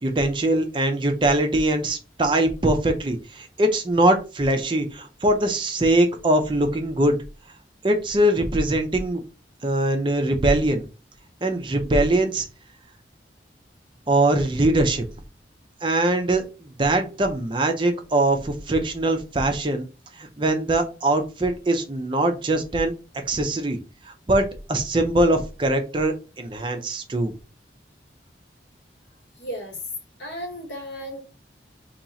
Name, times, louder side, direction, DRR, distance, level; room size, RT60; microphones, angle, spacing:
voice 1, 0.0-7.2 7.8-9.2 9.6-10.9 11.4-12.5 14.1-15.0 15.8-19.9 20.2-22.9 23.3-23.8 24.3-27.3, right 1 dB, 30° right, 0.5 m, -22 dB
voice 2, 29.4-29.8 30.2-31.2, equal, 80° left, 1.2 m, -34 dB
2.9 x 2.3 x 3.9 m
head